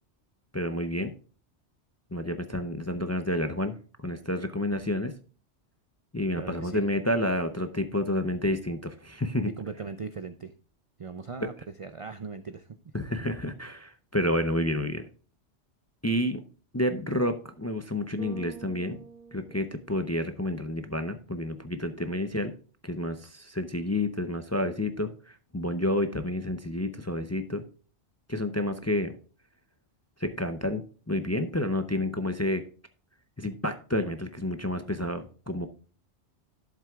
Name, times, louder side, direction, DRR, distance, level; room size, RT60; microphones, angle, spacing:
voice 1, 0.5-1.1 2.1-3.8 4.0-5.1 6.1-9.5 11.4-11.5 12.9-15.0 16.0-16.4 16.7-19.0 19.3-22.5 22.8-27.6 28.3-29.1 30.2-32.6 33.4-35.7, left 1 dB, 20° left, 8 dB, 0.5 m, -29 dB
voice 2, 6.4-6.9 9.5-10.5 11.0-11.5 11.8-12.7, right 5 dB, 50° right, 10 dB, 0.4 m, -38 dB
Bass guitar, 18.2-20.5, right 6 dB, 80° right, 2.0 m, -47 dB
11.5 x 7.5 x 2.4 m, 0.38 s
omnidirectional pair, 1.2 m